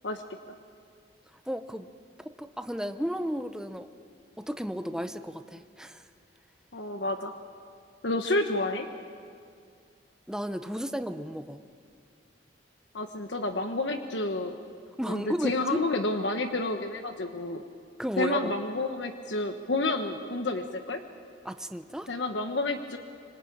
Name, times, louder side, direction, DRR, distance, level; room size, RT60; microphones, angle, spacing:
voice 1, 1.5-1.9 2.2-3.9 4.4-6.0 10.3-11.6 15.0-15.8 18.0-18.5 21.4-22.1, equal, 5° right, 9 dB, 0.9 m, -33 dB
voice 2, 6.7-7.3 8.0-8.9 12.9-14.6 15.1-17.6 18.2-21.0 22.1-23.0, left 2 dB, 70° left, 6 dB, 1.3 m, -30 dB
25.5 x 25.0 x 8.8 m, 2.3 s
head